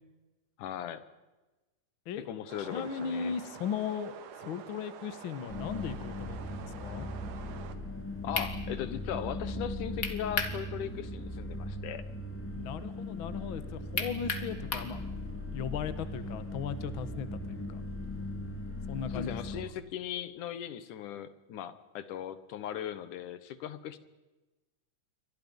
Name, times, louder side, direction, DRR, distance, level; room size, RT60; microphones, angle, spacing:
voice 1, 0.6-1.0 2.3-3.3 8.2-12.0 19.1-24.0, left 10 dB, 75° left, 13 dB, 2.6 m, -38 dB
sound 1, 2.5-7.8, right 8 dB, 80° right, 3.0 m, -48 dB
voice 2, 2.6-7.1 12.5-15.0 15.5-17.8 18.9-19.6, left 7 dB, 55° left, 12 dB, 1.5 m, -37 dB
sound 2, 5.5-19.7, left 1 dB, 5° left, 2.2 m, -39 dB
sound 3, 7.9-8.0 8.3-8.5 10.0-10.6 11.0-11.1 14.0-14.9, left 4 dB, 35° left, 1.6 m, -32 dB
29.0 x 24.0 x 5.4 m, 1.1 s
omnidirectional pair, 3.8 m